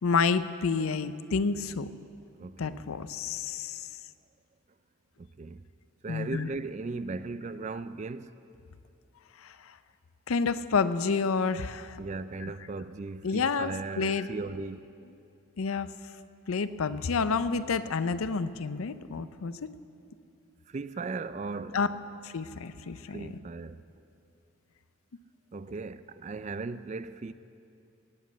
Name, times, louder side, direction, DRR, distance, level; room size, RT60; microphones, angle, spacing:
voice 1, 0.0-1.9 2.6-3.9 6.1-6.5 9.4-9.8 10.3-12.0 12.4-12.5 13.2-14.3 15.6-15.9 16.5-19.7 21.7-21.9 22.2-23.3, left 5 dB, 85° left, 0.5 m, -29 dB
voice 2, 2.4-2.8 5.2-5.6 6.0-8.3 12.0-15.0 20.7-21.9 23.1-23.8 25.5-27.3, right 3 dB, 35° right, 0.3 m, -37 dB
18.5 x 7.4 x 8.3 m
head